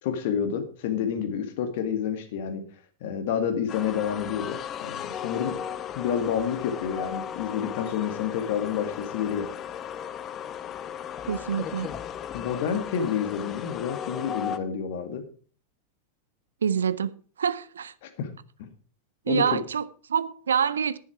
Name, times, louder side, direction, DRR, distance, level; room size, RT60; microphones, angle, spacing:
voice 1, 0.0-2.6 3.0-5.6 5.9-9.5 12.3-15.2 18.0-18.3 18.6-18.7 19.3-19.6, left 8 dB, 50° left, 2.0 m, -29 dB
sound 1, 3.7-14.6, left 9 dB, 30° left, 0.7 m, -36 dB
voice 2, 11.3-11.9 16.6-17.9 19.3-21.0, right 7 dB, 70° right, 0.5 m, -26 dB
11.0 x 10.5 x 4.7 m
figure-of-eight pair, 90°, 0 cm